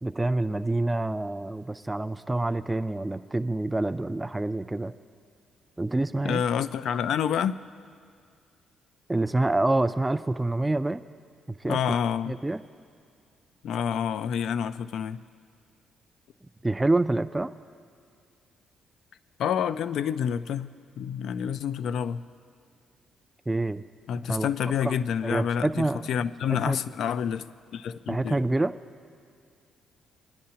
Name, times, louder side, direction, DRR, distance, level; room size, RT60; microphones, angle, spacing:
voice 1, 0.0-4.9 5.8-6.4 9.1-11.0 11.5-11.8 12.3-12.6 16.6-17.5 23.5-23.8 24.3-24.5 24.8-25.0 25.2-26.1 26.5-26.8 28.1-28.7, right 2 dB, 15° right, 10 dB, 0.3 m, -27 dB
voice 2, 6.2-7.6 11.7-12.4 13.6-15.2 19.4-20.7 21.0-22.2 24.1-28.4, left 8 dB, 75° left, 14 dB, 0.3 m, -28 dB
24.5 x 10.0 x 2.8 m, 2.3 s
cardioid pair, 90°, 0 cm